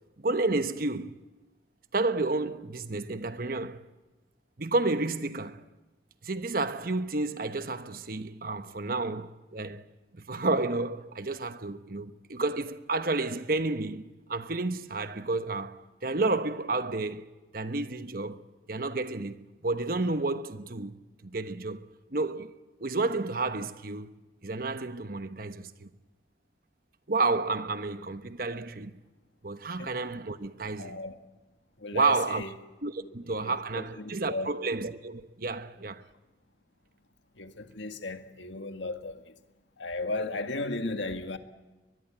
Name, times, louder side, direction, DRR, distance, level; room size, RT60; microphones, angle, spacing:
voice 1, 0.2-1.2 1.9-3.8 4.6-5.6 6.2-9.8 10.1-18.4 18.7-21.0 21.2-22.5 22.8-24.1 24.4-25.9 27.1-29.0 29.4-31.0 31.9-32.4 32.8-36.0, right 3 dB, 50° right, 1.1 m, -31 dB
voice 2, 30.8-31.2 31.8-32.6 33.0-33.1 33.4-34.5 37.4-39.4 39.8-41.4, left 2 dB, 85° left, 1.8 m, -35 dB
22.0 x 22.0 x 8.8 m
head